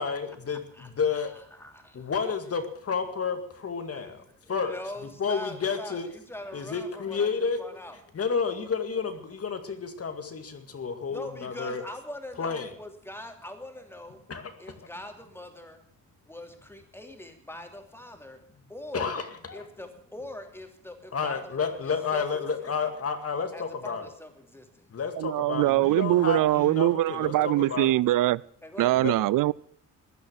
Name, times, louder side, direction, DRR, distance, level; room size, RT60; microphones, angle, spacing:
voice 1, 0.0-1.3 1.9-4.2 4.5-4.7 5.2-6.1 6.5-7.6 8.1-11.8 12.4-12.7 14.3-14.5 18.9-19.6 21.1-24.0 24.9-27.9 29.0-29.1, left 5 dB, 45° left, 2.2 m, -30 dB
voice 2, 0.7-2.0 3.9-8.0 11.1-14.2 14.6-15.8 16.3-18.4 18.7-19.2 19.5-22.2 22.6-22.7 23.5-24.9 28.6-29.0, left 1 dB, 5° left, 3.0 m, -42 dB
voice 3, 25.2-28.4 28.8-29.5, right 15 dB, 75° right, 0.5 m, -23 dB
15.5 x 10.5 x 6.5 m
cardioid pair, 95°, 33 cm